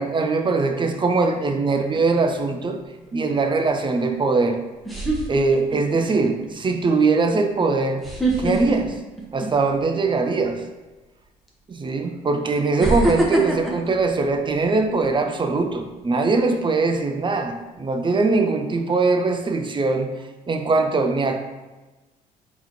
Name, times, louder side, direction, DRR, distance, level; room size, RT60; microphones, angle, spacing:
voice 1, 0.0-2.8 3.1-4.6 5.3-8.0 8.4-9.0 9.3-10.6 11.7-21.4, right 3 dB, 25° right, 5 dB, 0.6 m, -21 dB
sound 1, 1.7-2.2 4.1-4.2 4.8-6.0 6.4-6.7 8.0-9.9 10.2-10.5 11.5-11.6 12.8-15.1 15.5-15.8, right 1 dB, ahead, 1.1 m, -25 dB
4.1 x 3.9 x 3.1 m, 1.1 s
hypercardioid pair, 50°, 20 cm